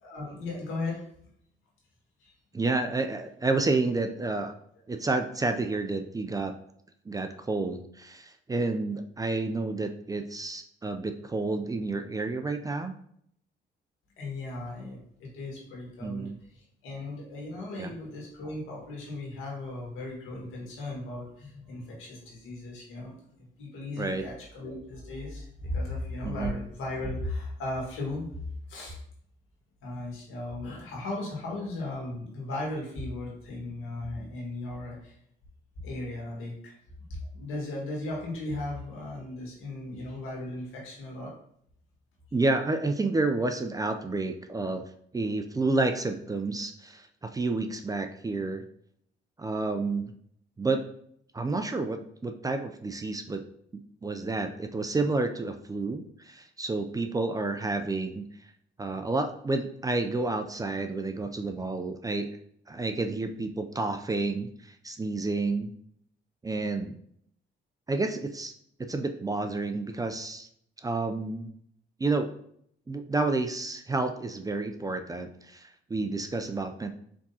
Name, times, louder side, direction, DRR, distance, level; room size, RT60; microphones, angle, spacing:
voice 1, 0.0-1.0 2.2-2.3 14.2-23.2 23.6-28.3 28.7-29.0 29.8-35.2 35.8-36.8 37.1-41.3, left 2 dB, 85° left, -3 dB, 1.7 m, -36 dB
voice 2, 2.5-4.5 4.9-6.5 7.1-12.9 16.0-16.4 17.8-17.9 24.0-24.2 26.2-26.6 42.3-44.8 45.1-48.6 49.4-50.1 50.6-50.8 51.3-53.4 53.7-58.3 58.8-62.3 62.7-65.7 66.4-66.9 67.9-68.5 68.8-70.5 70.8-71.5 72.0-72.3 72.9-76.9, right 3 dB, 20° right, 6 dB, 0.4 m, -30 dB
4.6 x 3.6 x 2.8 m, 0.68 s
cardioid pair, 90°, 20 cm